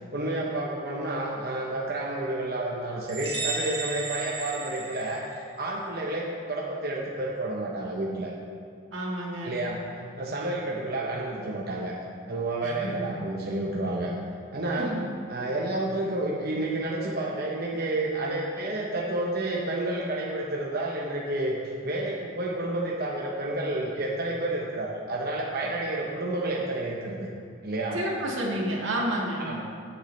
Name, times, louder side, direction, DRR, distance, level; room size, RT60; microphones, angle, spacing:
voice 1, 0.1-5.2 5.6-8.3 9.4-9.8 10.2-11.9 12.3-14.1 14.5-15.0 15.3-21.6 21.8-27.3 27.6-28.0 29.0-29.1 29.4-29.6, right 2 dB, 45° right, -3 dB, 0.9 m, -30 dB
sound 1, 3.1-5.7, right 3 dB, 25° right, 2.1 m, -34 dB
voice 2, 8.9-9.6 12.6-13.1 14.8-15.1 27.9-29.5, right 1 dB, 65° right, -3 dB, 1.9 m, -30 dB
16.0 x 6.7 x 3.3 m, 2.2 s
head